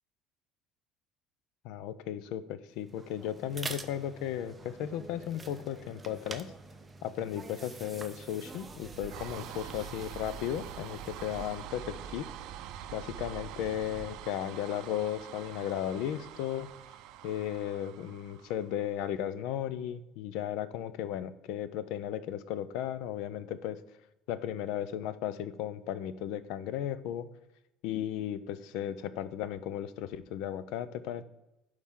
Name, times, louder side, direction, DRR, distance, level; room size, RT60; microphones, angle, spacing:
voice 1, 1.6-6.5 7.0-12.2 12.9-16.7 17.2-23.8 24.3-27.3 27.8-31.2, left 10 dB, 70° left, 14 dB, 0.5 m, -35 dB
sound 1, 2.8-12.6, right 3 dB, 15° right, 0.5 m, -47 dB
sound 2, 8.6-19.1, right 10 dB, 65° right, 0.5 m, -45 dB
11.5 x 4.8 x 3.7 m, 0.93 s
cardioid pair, 155°, 0 cm